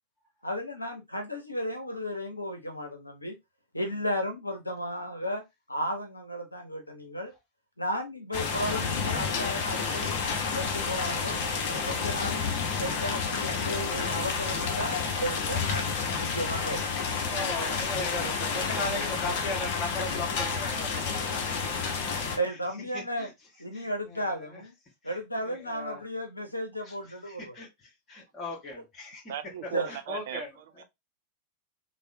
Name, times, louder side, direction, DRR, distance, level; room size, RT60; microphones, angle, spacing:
voice 1, 0.4-3.4 3.7-7.3 7.8-10.2 10.5-11.4 11.7-12.4 12.8-15.9 16.2-16.8 22.3-23.3 23.6-24.7 25.0-27.6 28.8-28.9 29.7-29.9, equal, 85° left, 0.6 m, -34 dB
sound 1, 8.3-22.4, left 5 dB, 50° left, 0.6 m, -30 dB
voice 2, 14.8-15.2 17.2-22.2 22.9-23.3 23.7-24.4 25.5-26.0 27.3-27.7 28.1-29.2 29.9-30.5, left 2 dB, 25° left, 1.3 m, -38 dB
voice 3, 29.3-30.8, right 10 dB, 55° right, 0.4 m, -39 dB
3.4 x 2.0 x 2.6 m
figure-of-eight pair, 90°, 0 cm